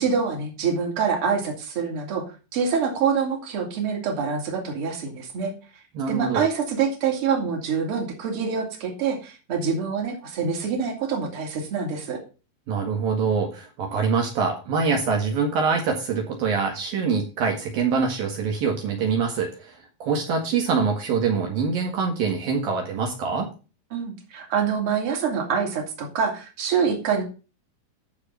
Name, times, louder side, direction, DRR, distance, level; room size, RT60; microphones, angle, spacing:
voice 1, 0.0-5.5 6.1-12.2 23.9-27.2, right 6 dB, 35° right, 1 dB, 3.4 m, -26 dB
voice 2, 6.0-6.4 12.7-23.5, right 5 dB, 65° right, 1 dB, 3.5 m, -24 dB
14.5 x 5.0 x 5.6 m, 0.33 s
omnidirectional pair, 4.6 m